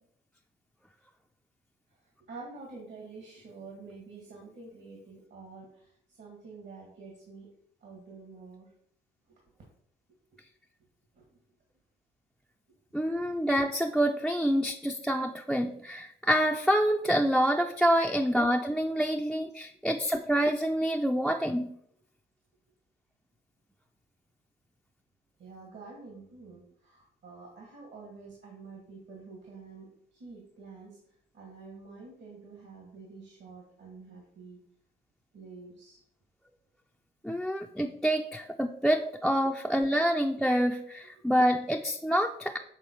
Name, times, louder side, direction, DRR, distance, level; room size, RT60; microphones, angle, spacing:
voice 1, 2.2-7.5 7.8-8.7 11.2-11.3 25.4-31.0 31.3-34.6 35.3-36.0, right 4 dB, 65° right, -1 dB, 1.8 m, -48 dB
voice 2, 12.9-21.7 37.2-42.6, equal, ahead, 3 dB, 0.4 m, -27 dB
7.2 x 3.8 x 4.5 m, 0.69 s
cardioid pair, 90°, 20 cm